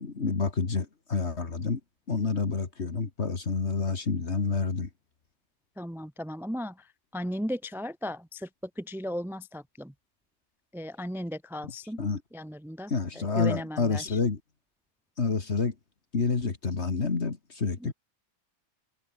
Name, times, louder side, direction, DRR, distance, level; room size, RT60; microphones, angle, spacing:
voice 1, 0.0-1.8 2.1-4.9 11.6-11.7 12.0-12.2 12.9-14.4 15.2-15.7 16.1-17.9, left 4 dB, 70° left, 2.3 m, -28 dB
voice 2, 5.8-6.7 7.1-8.5 8.8-9.9 10.7-12.0 12.3-12.9 13.2-14.2 17.8-17.9, equal, ahead, 0.9 m, -36 dB
omnidirectional pair, 1.2 m